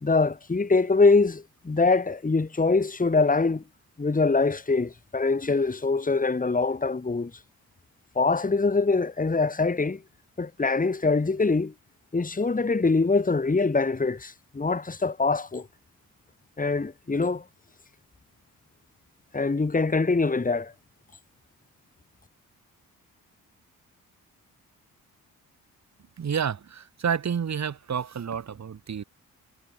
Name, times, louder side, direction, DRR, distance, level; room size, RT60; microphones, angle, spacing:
voice 1, 0.0-3.6 4.0-7.3 8.2-10.0 10.4-11.7 12.1-15.7 16.6-17.4 19.3-20.7, left 3 dB, 20° left, 1.9 m, -23 dB
voice 2, 26.2-29.0, right 7 dB, 45° right, 1.6 m, -29 dB
supercardioid pair, 55°, 37 cm